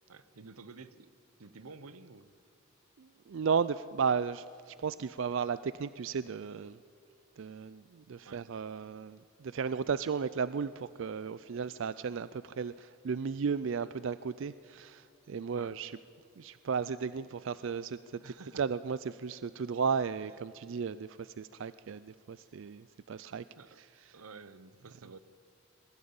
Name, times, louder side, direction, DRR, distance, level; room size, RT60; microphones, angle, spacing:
voice 1, 0.1-2.3 8.2-8.4 15.5-15.7 18.2-18.6 23.6-23.8 24.1-25.2, right 4 dB, 85° right, 15 dB, 0.8 m, -51 dB
voice 2, 3.0-6.8 7.4-16.0 16.4-23.4 23.8-24.2, right 6 dB, 60° right, 15 dB, 0.4 m, -35 dB
21.0 x 15.0 x 8.7 m, 2.5 s
head